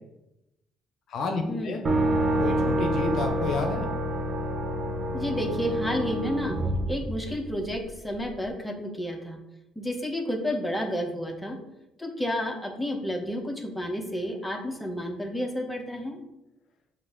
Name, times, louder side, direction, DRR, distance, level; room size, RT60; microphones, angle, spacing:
voice 1, 1.1-1.8 2.4-3.9, left 3 dB, 65° left, 4 dB, 0.6 m, -30 dB
sound 1, 1.8-7.7, right 1 dB, 40° right, 0.9 m, -27 dB
voice 2, 5.1-6.6 6.9-9.4 9.8-11.6 12.0-16.2, equal, 5° left, 2 dB, 0.8 m, -31 dB
5.1 x 2.5 x 3.7 m, 0.89 s
supercardioid pair, 75°, 0 cm